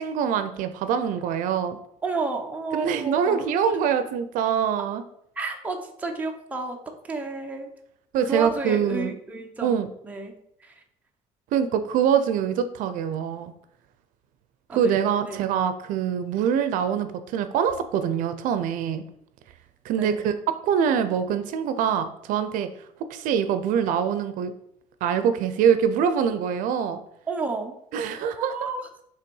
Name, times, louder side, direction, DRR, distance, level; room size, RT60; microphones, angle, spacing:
voice 1, 0.0-1.8 2.7-5.0 8.1-9.1 9.6-9.9 11.5-13.5 14.7-19.0 19.8-22.7 23.1-24.5 25.0-27.0 27.9-28.5, right 8 dB, 75° right, 11 dB, 0.5 m, -24 dB
voice 2, 2.0-3.4 5.4-6.8 7.0-7.7 8.2-9.7 10.0-10.8 14.7-14.9 15.2-15.5 19.9-20.4 27.3-27.7 28.4-28.9, right 3 dB, 10° right, 1 dB, 0.7 m, -31 dB
5.6 x 3.4 x 5.3 m, 0.72 s
cardioid pair, 175°, 14 cm